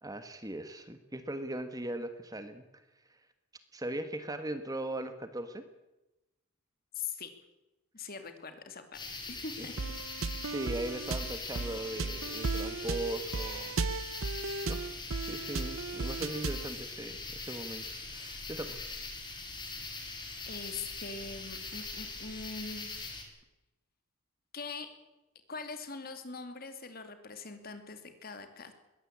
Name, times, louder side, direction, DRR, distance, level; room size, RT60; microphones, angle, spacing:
voice 1, 0.0-2.6 3.7-5.6 9.6-9.7 10.5-13.8 14.7-14.8 15.2-18.8, right 1 dB, 15° right, 9 dB, 1.4 m, -39 dB
voice 2, 6.9-7.3 7.9-9.9 20.5-23.1 24.5-24.9 25.5-28.7, left 4 dB, 45° left, 8 dB, 2.5 m, -42 dB
sound 1, 8.9-23.2, left 3 dB, 20° left, 3.9 m, -42 dB
sound 2, 9.8-16.7, right 3 dB, 70° right, 0.8 m, -36 dB
21.5 x 17.0 x 8.7 m, 1.0 s
head